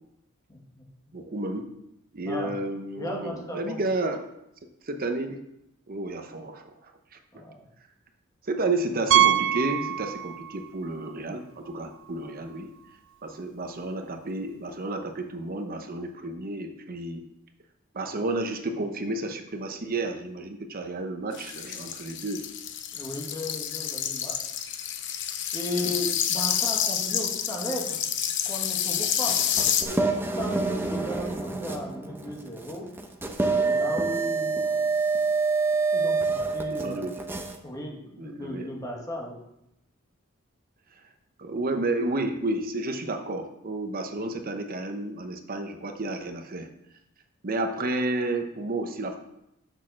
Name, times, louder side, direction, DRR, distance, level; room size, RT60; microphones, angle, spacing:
voice 1, 0.5-0.8 2.2-2.5 3.0-3.8 7.3-7.6 22.9-24.4 25.5-28.0 28.4-30.0 30.3-32.9 33.7-34.6 35.9-37.1 37.6-39.4, left 1 dB, 15° left, -1 dB, 1.7 m, -35 dB
voice 2, 1.1-1.7 2.1-4.2 4.9-5.4 5.9-6.7 8.4-12.7 13.2-17.2 17.9-22.4 25.8-25.9 36.7-37.1 38.2-38.7 41.4-46.7 47.4-49.2, right 2 dB, 45° right, 6 dB, 0.8 m, -31 dB
Piano, 9.1-10.7 11.0-11.1 11.7-11.8 12.1-12.2 14.2-14.3, right 11 dB, 65° right, 0.4 m, -23 dB
sound 1, 21.3-29.8, left 9 dB, 60° left, 0.7 m, -29 dB
sound 2, 29.3-37.6, right 4 dB, 10° right, 0.7 m, -27 dB
6.5 x 6.3 x 6.2 m, 0.83 s
head